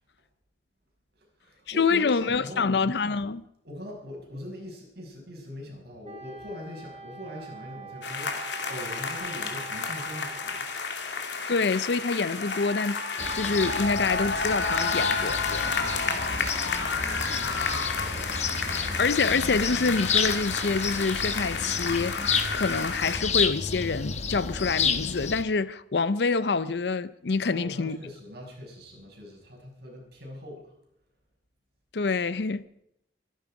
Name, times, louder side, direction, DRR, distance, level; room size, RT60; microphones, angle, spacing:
voice 1, 1.2-2.8 3.6-10.6 15.6-18.5 27.5-30.7, left 1 dB, 60° right, 5.9 m, -42 dB
voice 2, 1.8-3.4 11.5-13.0 13.3-15.7 19.0-28.0 31.9-32.7, left 4 dB, 65° left, 0.6 m, -26 dB
Wind instrument woodwind instrument, 6.0-10.9, right 6 dB, 40° right, 2.1 m, -45 dB
sound 1, 8.0-23.2, left 4 dB, 80° left, 2.5 m, -31 dB
sound 2, 13.2-25.4, left 6 dB, 40° left, 1.1 m, -31 dB
24.0 x 11.0 x 4.9 m
head